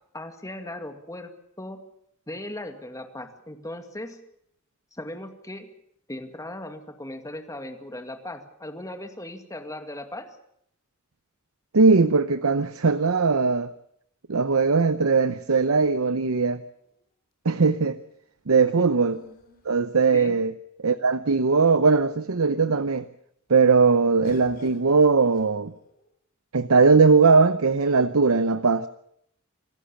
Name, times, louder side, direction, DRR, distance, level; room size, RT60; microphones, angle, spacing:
voice 1, 0.1-1.8 2.3-4.2 4.9-5.7 6.1-10.3 18.8-18.9 20.1-20.4, left 1 dB, 15° left, 2.2 m, -38 dB
voice 2, 11.7-13.7 14.3-16.6 17.4-18.0 18.5-19.2 19.7-20.5 20.8-23.0 23.5-25.7 26.5-28.9, right 4 dB, 90° right, 0.8 m, -20 dB
sound 1, 15.9-17.0 19.0-20.5 21.3-21.4 21.7-22.3 24.2-26.1 27.0-27.7, left 1 dB, 45° left, 4.3 m, -51 dB
26.5 x 15.5 x 7.1 m
head